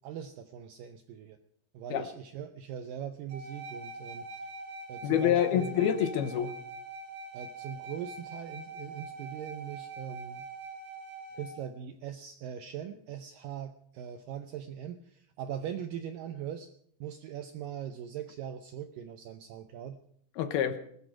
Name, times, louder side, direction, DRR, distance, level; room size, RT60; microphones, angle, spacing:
voice 1, 0.0-1.4 1.7-4.5 4.9-5.7 7.3-10.4 11.3-16.7 17.0-20.0 20.7-20.8, right 9 dB, 80° right, 9 dB, 2.0 m, -41 dB
sound 1, 3.3-11.6, right 3 dB, 50° right, 4.0 m, -43 dB
voice 2, 5.0-6.5 20.4-20.8, left 9 dB, 75° left, 10 dB, 2.8 m, -27 dB
20.5 x 13.0 x 4.9 m, 0.68 s
omnidirectional pair, 4.8 m